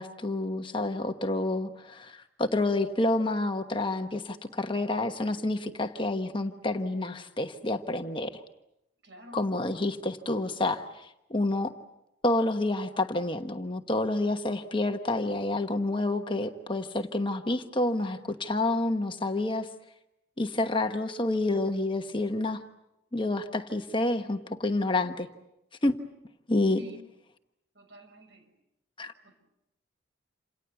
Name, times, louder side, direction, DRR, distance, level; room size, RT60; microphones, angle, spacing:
voice 1, 0.0-8.4 9.3-11.7 12.2-19.7 20.4-22.6 23.1-25.3 25.8-26.0 26.5-26.8 29.0-29.1, left 2 dB, 25° left, 6 dB, 1.2 m, -29 dB
voice 2, 9.0-9.5 26.7-27.0 27.7-28.5 29.2-29.3, left 1 dB, 65° right, 6 dB, 6.0 m, -49 dB
28.5 x 27.5 x 7.0 m, 0.87 s
head